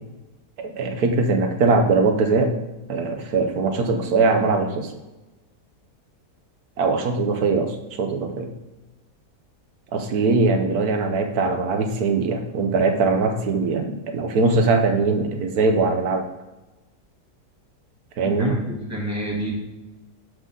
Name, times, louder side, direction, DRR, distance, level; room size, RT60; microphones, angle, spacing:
voice 1, 0.6-2.5 2.9-4.9 6.8-8.5 9.9-16.2 18.2-18.5, right 3 dB, 75° right, 5 dB, 1.3 m, -21 dB
voice 2, 18.2-19.5, right 1 dB, 10° right, -3 dB, 1.8 m, -29 dB
11.5 x 3.8 x 3.8 m, 1.0 s
omnidirectional pair, 1.7 m